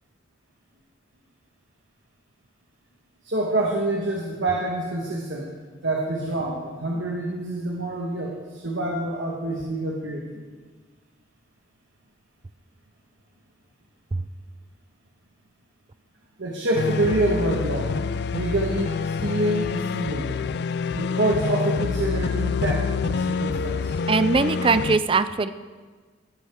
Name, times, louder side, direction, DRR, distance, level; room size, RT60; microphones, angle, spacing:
voice 1, 3.2-5.5 5.8-10.2 16.4-17.9 18.3-18.9 19.2-20.4 20.9-24.0, right 1 dB, 70° right, -2 dB, 1.5 m, -26 dB
sound 1, 16.7-25.0, left 5 dB, 55° left, 0.3 m, -27 dB
voice 2, 24.1-25.5, right 4 dB, 25° right, 13 dB, 0.4 m, -21 dB
16.5 x 10.0 x 3.6 m, 1.4 s
head